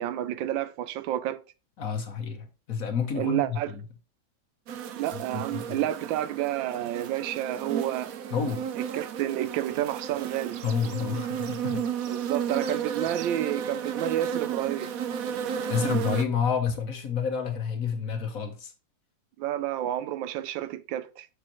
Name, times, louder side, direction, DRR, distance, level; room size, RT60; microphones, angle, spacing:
voice 1, 0.0-1.4 3.1-3.7 4.9-8.1 8.8-10.6 12.1-14.9 19.4-21.3, right 13 dB, 85° right, 1.3 m, -30 dB
voice 2, 1.8-3.8 5.3-5.8 8.3-8.6 10.6-11.8 15.7-18.7, left 6 dB, 55° left, 1.3 m, -29 dB
sound 1, 4.7-16.3, right 8 dB, 65° right, 0.9 m, -33 dB
6.9 x 6.7 x 3.0 m
omnidirectional pair, 2.0 m